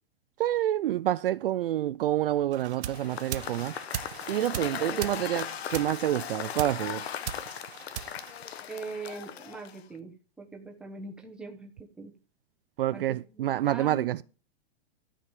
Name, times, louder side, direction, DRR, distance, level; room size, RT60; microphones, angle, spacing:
voice 1, 0.4-3.7 4.3-7.0 12.8-14.2, right 13 dB, 60° right, 0.4 m, -28 dB
sound 1, 2.5-9.1, right 9 dB, 85° right, 1.2 m, -40 dB
Cheering / Applause / Crowd, 2.9-10.0, left 9 dB, 75° left, 1.1 m, -38 dB
voice 2, 8.7-12.1 12.9-14.2, right 3 dB, 5° right, 1.0 m, -42 dB
12.5 x 5.1 x 7.2 m
supercardioid pair, 170°, 32 cm